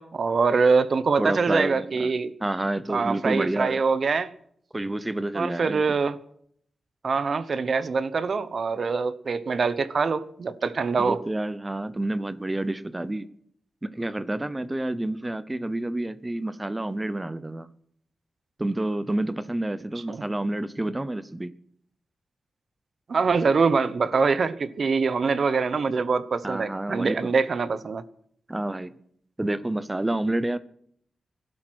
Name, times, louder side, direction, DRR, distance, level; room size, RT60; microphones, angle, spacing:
voice 1, 0.0-2.3 2.9-4.3 5.3-6.2 7.0-11.2 20.1-20.2 23.1-28.0, right 4 dB, 55° right, 15 dB, 0.9 m, -24 dB
voice 2, 1.2-2.1 2.4-3.8 4.7-5.8 11.0-13.3 13.8-17.7 18.6-21.5 26.4-27.3 28.5-28.9 29.4-30.6, right 1 dB, 15° right, 14 dB, 0.8 m, -29 dB
18.5 x 12.0 x 6.3 m, 0.69 s
wide cardioid pair, 125°, 0 cm